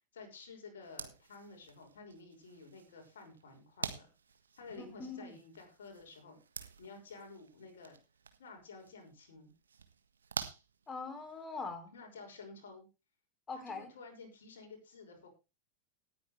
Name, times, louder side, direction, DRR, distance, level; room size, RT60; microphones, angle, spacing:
voice 1, 0.1-4.1 4.6-6.4 6.8-8.0 8.4-9.5 11.9-12.9 13.5-15.3, left 4 dB, 65° left, 2 dB, 5.9 m, -52 dB
sound 1, 0.8-11.4, right 6 dB, 70° right, 1.6 m, -48 dB
voice 2, 4.8-5.4 10.9-11.9 13.5-13.9, left 4 dB, 20° left, 10 dB, 3.0 m, -42 dB
18.5 x 9.6 x 3.3 m, 0.28 s
figure-of-eight pair, 90°, 0 cm